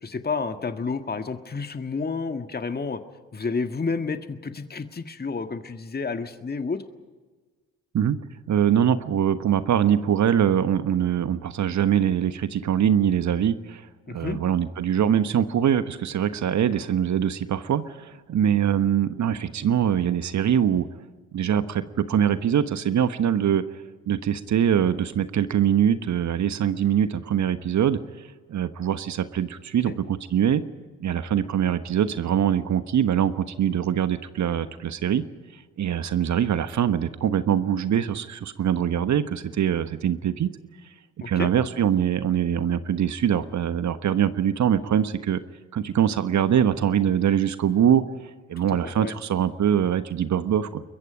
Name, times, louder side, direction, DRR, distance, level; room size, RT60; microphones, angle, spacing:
voice 1, 0.0-3.0 3.3-6.8 14.1-14.4 29.9-30.0 41.2-41.5 48.8-49.1, left 4 dB, 25° left, 8 dB, 1.8 m, -30 dB
voice 2, 8.5-13.8 14.1-20.9 21.3-23.6 24.1-28.0 28.5-30.6 31.0-35.2 35.8-40.5 41.3-45.4 45.7-48.0 48.5-50.8, right 9 dB, 45° right, 12 dB, 1.3 m, -23 dB
29.0 x 22.5 x 5.2 m, 1.4 s
figure-of-eight pair, 45°, 38 cm